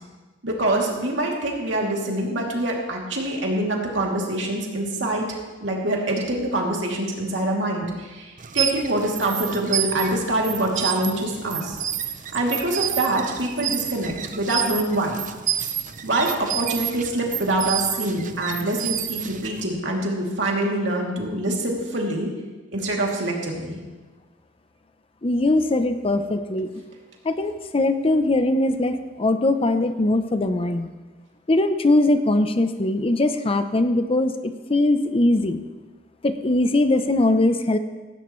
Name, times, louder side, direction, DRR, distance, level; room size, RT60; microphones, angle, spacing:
voice 1, 0.4-11.8 12.3-15.2 16.0-22.3 22.7-23.8, right 1 dB, 70° right, -1 dB, 2.8 m, -25 dB
sound 1, 8.4-19.7, right 9 dB, 45° right, 0.7 m, -29 dB
voice 2, 25.2-26.7 27.2-30.9 31.5-35.6 36.2-37.8, left 2 dB, 30° left, 9 dB, 0.7 m, -21 dB
16.5 x 16.5 x 3.2 m, 1.3 s
head